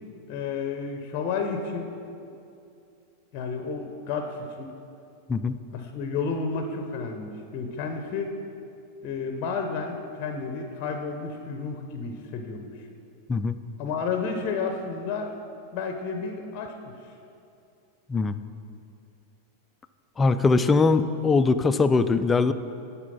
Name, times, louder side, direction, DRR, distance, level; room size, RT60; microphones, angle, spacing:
voice 1, 0.3-1.9 3.3-4.7 5.7-8.4 9.0-12.7 13.8-15.3 15.7-16.7, left 5 dB, 40° left, 5 dB, 0.7 m, -31 dB
voice 2, 20.2-22.5, left 4 dB, 15° left, 11 dB, 0.3 m, -21 dB
11.0 x 4.2 x 5.7 m, 2.6 s
figure-of-eight pair, 90°, 0 cm